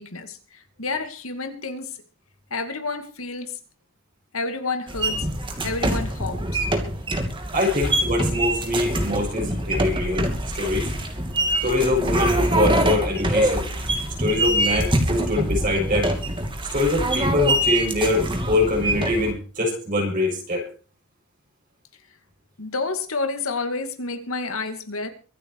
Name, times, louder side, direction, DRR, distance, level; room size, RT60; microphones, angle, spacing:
voice 1, 0.0-2.0 2.5-3.6 4.3-5.3 5.6-6.6 22.6-25.1, left 3 dB, 80° left, 8 dB, 2.3 m, -30 dB
sound 1, 4.9-19.3, right 1 dB, 25° right, 2.6 m, -24 dB
voice 2, 7.5-10.3 10.5-10.9 11.6-13.6 14.2-16.1 16.7-20.6, left 2 dB, 40° right, 0 dB, 7.2 m, -23 dB
24.0 x 8.6 x 4.7 m, 0.38 s
head